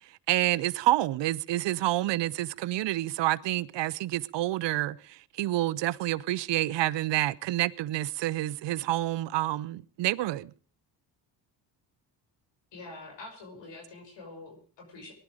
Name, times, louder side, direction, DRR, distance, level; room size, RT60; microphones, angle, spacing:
voice 1, 0.3-10.5, right 16 dB, 70° right, 0.7 m, -28 dB
voice 2, 12.7-15.1, left 2 dB, 70° left, 6.2 m, -45 dB
19.5 x 11.5 x 4.9 m
cardioid pair, 85°, 44 cm